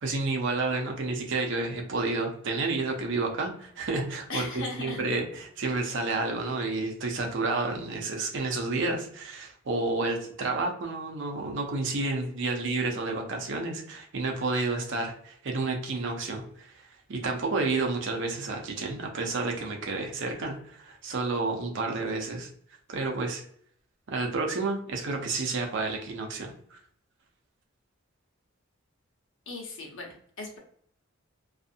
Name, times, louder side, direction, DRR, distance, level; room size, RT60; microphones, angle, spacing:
voice 1, 0.0-22.5 22.9-23.4 24.1-26.8, right 3 dB, 60° right, 2 dB, 0.6 m, -30 dB
voice 2, 4.3-5.2 29.5-30.6, left 3 dB, 65° left, 0 dB, 0.9 m, -38 dB
2.7 x 2.5 x 2.4 m, 0.62 s
head